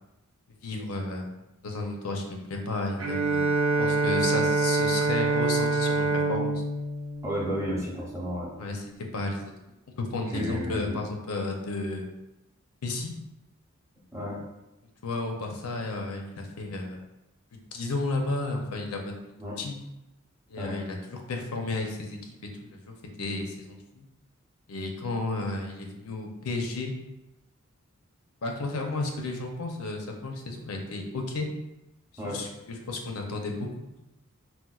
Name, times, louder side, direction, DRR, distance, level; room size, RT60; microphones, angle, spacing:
voice 1, 0.6-1.3 1.6-3.4 3.8-6.5 8.6-8.8 9.1-9.5 10.0-12.1 12.8-13.1 15.0-17.0 17.7-19.1 19.6-19.8 20.5-24.1 24.7-26.9 28.4-31.5 32.2-33.7, left 2 dB, 85° left, 2 dB, 0.6 m, -33 dB
Bowed string instrument, 3.0-8.2, right 3 dB, 65° right, 0.7 m, -26 dB
voice 2, 7.2-8.5 10.3-11.0 14.1-14.4 19.4-19.5 20.6-20.7 32.2-32.4, equal, 15° right, -5 dB, 0.7 m, -32 dB
4.2 x 2.2 x 2.3 m, 0.94 s
head